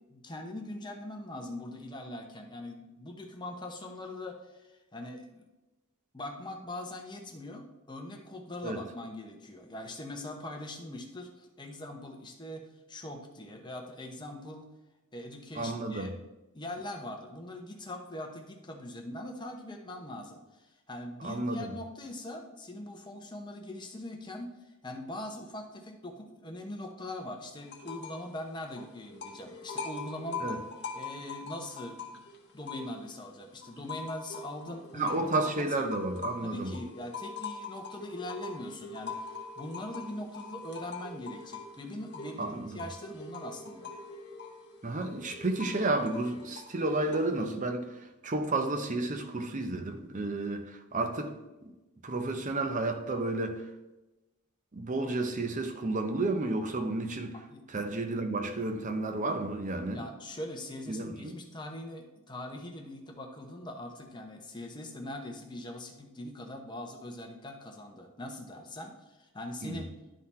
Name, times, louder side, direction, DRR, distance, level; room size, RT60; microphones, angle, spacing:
voice 1, 0.1-5.5 6.1-14.7 15.1-16.2 16.5-24.5 24.8-30.5 30.9-35.1 35.5-35.6 36.4-43.9 57.5-57.6 59.9-69.9, left 1 dB, 20° left, 0.9 m, -42 dB
voice 2, 15.5-16.1 21.2-21.7 30.4-30.6 34.9-36.7 42.4-42.8 44.8-51.4 51.6-51.7 52.0-53.7 54.7-57.4 57.7-60.1 60.9-61.4 69.6-69.8, right 2 dB, 35° right, 0.7 m, -32 dB
sound 1, 27.7-28.3 28.6-33.2 33.6-47.4, left 4 dB, 50° left, 1.1 m, -43 dB
11.0 x 3.9 x 4.3 m
head